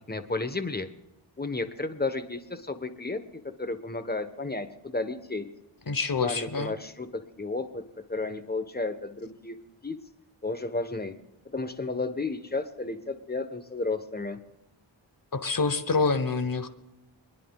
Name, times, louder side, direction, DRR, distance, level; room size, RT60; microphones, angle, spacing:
voice 1, 0.1-0.9 1.4-3.2 3.6-5.4 6.2-7.8 8.1-9.5 9.8-10.0 10.4-11.1 11.5-14.4, left 3 dB, 20° left, 9 dB, 1.2 m, -32 dB
voice 2, 5.9-6.7 15.3-16.7, left 4 dB, 50° left, 10 dB, 1.2 m, -26 dB
27.5 x 10.5 x 2.4 m, 0.93 s
wide cardioid pair, 50°, 44 cm